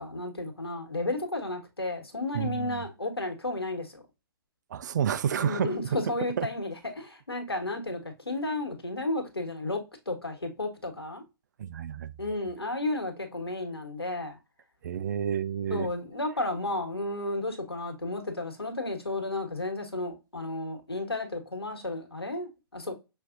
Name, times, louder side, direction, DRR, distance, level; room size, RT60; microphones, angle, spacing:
voice 1, 0.0-4.0 5.4-9.8 10.1-11.2 12.2-14.4 15.7-22.9, left 2 dB, 85° left, 1.5 m, -33 dB
voice 2, 2.3-2.9 4.7-5.7 6.4-6.5 11.6-12.1 14.8-15.9, right 8 dB, 50° right, 0.4 m, -30 dB
6.1 x 2.6 x 2.4 m
figure-of-eight pair, 125°, 13 cm